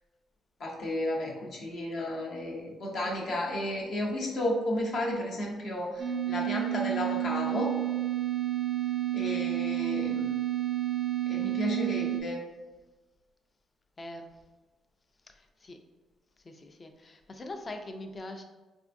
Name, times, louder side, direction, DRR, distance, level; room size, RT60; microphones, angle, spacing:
voice 1, 0.6-7.7 9.1-10.3 11.3-12.4, left 1 dB, 60° left, -3 dB, 0.8 m, -33 dB
voice 2, 3.0-3.3 14.0-14.3 15.3-15.8 16.4-18.4, left 2 dB, 30° left, 5 dB, 0.4 m, -43 dB
sound 1, 6.0-12.2, right 13 dB, 50° right, 0.4 m, -30 dB
3.4 x 2.5 x 2.5 m, 1.2 s
cardioid pair, 90°, 0 cm